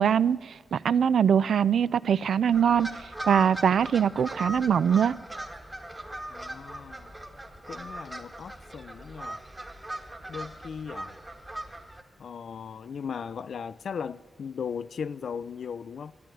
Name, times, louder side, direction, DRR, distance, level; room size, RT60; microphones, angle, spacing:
voice 1, 0.0-3.0 3.3-5.2, right 8 dB, 85° right, 0.3 m, -23 dB
sound 1, 2.5-12.0, right 1 dB, 20° right, 1.3 m, -39 dB
voice 2, 6.3-7.1 7.7-9.4 10.3-11.2 12.2-16.1, left 6 dB, 75° left, 0.3 m, -37 dB
12.0 x 8.9 x 9.9 m
wide cardioid pair, 105°, 0 cm